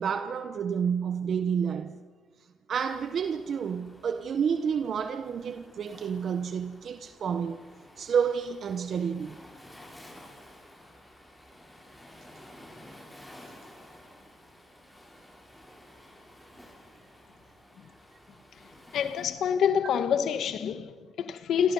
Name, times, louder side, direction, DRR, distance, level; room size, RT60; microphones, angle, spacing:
voice 1, 0.0-2.0 2.7-7.6 8.0-9.4, right 7 dB, 55° right, 1.0 m, -29 dB
Waves surf, 2.8-19.2, left 1 dB, 10° left, 7.5 m, -52 dB
voice 2, 18.9-21.7, left 8 dB, 70° left, 1.5 m, -27 dB
27.5 x 25.5 x 5.6 m
cardioid pair, 90°, 0 cm